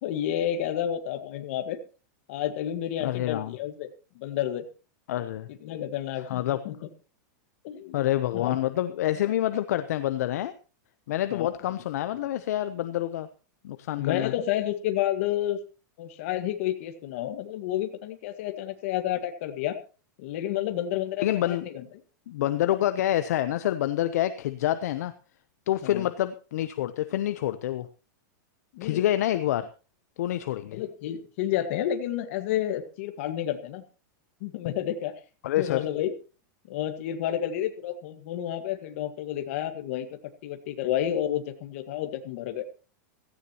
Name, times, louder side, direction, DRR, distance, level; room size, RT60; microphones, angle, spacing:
voice 1, 0.0-1.8 2.3-3.9 4.1-4.6 5.6-6.8 7.6-8.0 8.3-8.6 11.3-11.5 14.0-15.6 16.0-19.8 20.2-21.9 25.8-26.1 28.7-29.0 30.7-33.8 34.4-35.1 35.6-36.1 36.7-42.6, left 11 dB, 40° left, 8 dB, 1.6 m, -30 dB
voice 2, 3.0-3.6 5.1-5.5 6.3-6.6 7.9-10.5 11.1-13.3 13.6-14.3 21.2-21.6 22.3-25.1 25.7-27.9 28.8-29.7 30.2-30.8 35.4-35.9, left 13 dB, 55° left, 11 dB, 0.8 m, -27 dB
16.5 x 15.5 x 3.0 m, 0.35 s
supercardioid pair, 175°, 10 cm